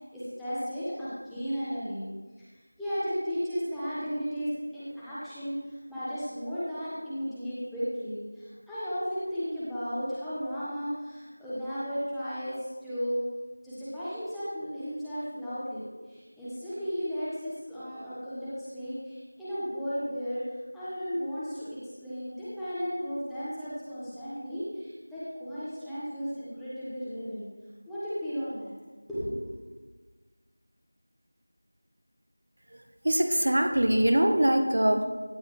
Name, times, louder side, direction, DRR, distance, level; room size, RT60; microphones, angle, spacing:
voice 1, 0.1-2.1 2.8-12.6 12.8-13.2 13.6-20.4 20.7-21.7 22.0-27.4 27.9-28.7 29.1-29.6, equal, ahead, -15 dB, 1.1 m, -34 dB
voice 2, 33.0-35.1, right 1 dB, 55° right, 6 dB, 1.1 m, -23 dB
16.5 x 9.4 x 3.1 m, 1.3 s
figure-of-eight pair, 180°, 0 cm